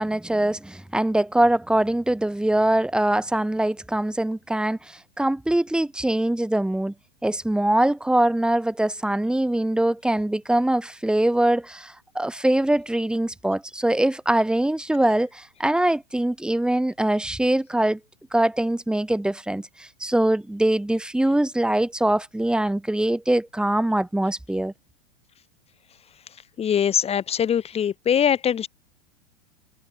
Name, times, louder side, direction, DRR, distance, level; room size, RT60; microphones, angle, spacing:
voice 1, 0.0-6.9 7.2-18.0 18.3-24.7, right 1 dB, 5° right, 5.8 m, -23 dB
voice 2, 26.6-28.7, left 8 dB, 20° left, 4.7 m, -22 dB
supercardioid pair, 150°, 32 cm